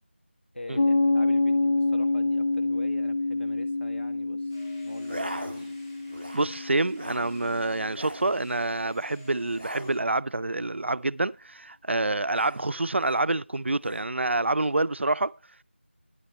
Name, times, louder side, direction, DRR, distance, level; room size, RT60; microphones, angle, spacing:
voice 1, 0.5-4.6 4.8-5.4, left 1 dB, 75° left, 1.5 m, -43 dB
Piano, 0.8-8.0, left 2 dB, 45° left, 0.4 m, -27 dB
sound 1, 4.5-10.0, left 2 dB, 20° left, 3.5 m, -55 dB
sound 2, 5.0-5.8 6.1-6.5 6.8-7.3 7.8-8.3 9.5-10.0 12.3-13.2 13.8-14.1, right 1 dB, 5° right, 0.6 m, -40 dB
voice 2, 6.3-15.3, right 2 dB, 75° right, 0.4 m, -27 dB
9.8 x 8.5 x 4.3 m
figure-of-eight pair, 180°, 6 cm